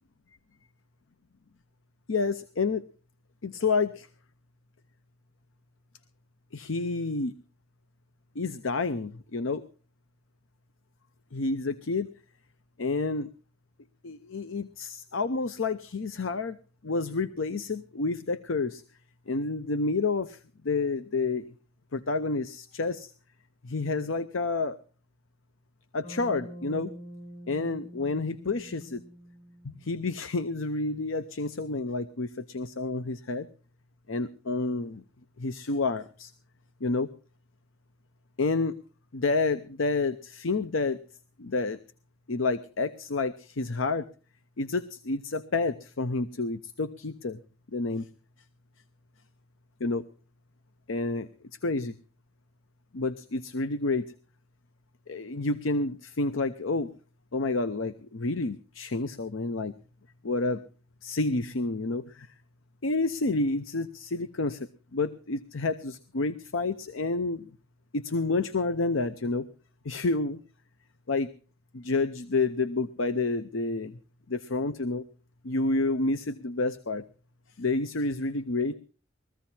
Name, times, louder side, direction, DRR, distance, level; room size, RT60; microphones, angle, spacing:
voice 1, 2.1-2.9 3.4-4.1 6.5-7.3 8.4-9.6 11.3-12.1 12.8-13.3 14.0-16.6 16.8-18.8 19.3-20.4 20.6-21.5 21.9-23.1 23.6-24.8 25.9-26.9 27.5-29.1 29.6-33.5 34.1-35.0 35.4-36.3 36.8-37.1 38.4-38.8 39.1-41.0 41.4-41.8 42.3-44.1 44.6-47.4 47.7-48.1 49.8-50.0 50.9-51.3 51.6-52.0 52.9-54.1 55.1-56.9 57.3-59.7 60.2-60.6 61.0-62.3 62.8-67.5 67.9-69.5 69.8-70.4 71.1-71.3 71.7-74.0 74.3-75.0 75.4-77.0 77.6-78.7, left 3 dB, 80° left, 12 dB, 0.7 m, -29 dB
Bass guitar, 26.0-30.4, equal, 60° left, 3.1 m, -46 dB
22.0 x 15.0 x 2.8 m, 0.37 s
head